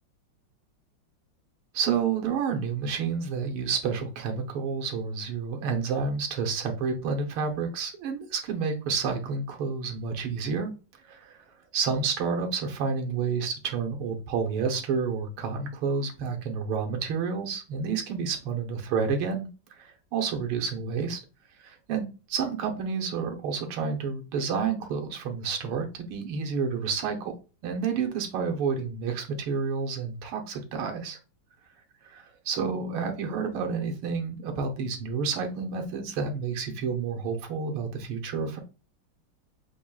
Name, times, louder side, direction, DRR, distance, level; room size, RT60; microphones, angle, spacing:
voice 1, 1.7-10.7 11.1-11.4 11.7-21.2 21.6-22.1 22.3-27.3 27.6-31.2 32.5-38.6, right 5 dB, 85° right, 4 dB, 1.8 m, -30 dB
7.2 x 3.1 x 2.2 m, 0.33 s
omnidirectional pair, 2.3 m